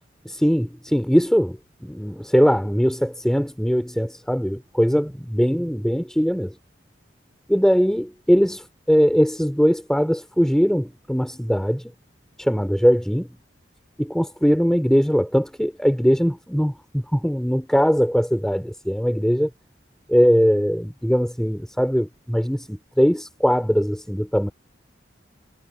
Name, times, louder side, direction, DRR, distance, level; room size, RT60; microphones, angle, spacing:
voice 1, 0.2-6.5 7.5-11.9 12.4-13.3 14.0-19.5 20.1-24.5, equal, 5° left, 3.3 m, -21 dB
head